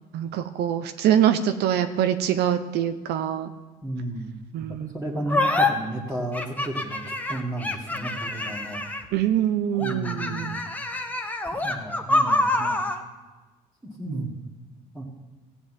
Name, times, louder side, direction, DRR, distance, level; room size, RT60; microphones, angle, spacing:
voice 1, 0.1-3.5 4.5-4.9 9.1-10.6 14.1-14.4, right 10 dB, 75° right, 8 dB, 0.8 m, -24 dB
voice 2, 3.8-4.3 4.7-8.8 9.8-10.6 11.5-12.8 14.0-14.3 14.9-15.1, right 1 dB, 10° right, -5 dB, 2.1 m, -33 dB
sound 1, 5.3-5.7 6.3-9.1 9.8-13.0, left 2 dB, 10° left, 1.2 m, -26 dB
15.5 x 5.4 x 9.2 m, 1.2 s
cardioid pair, 110°, 17 cm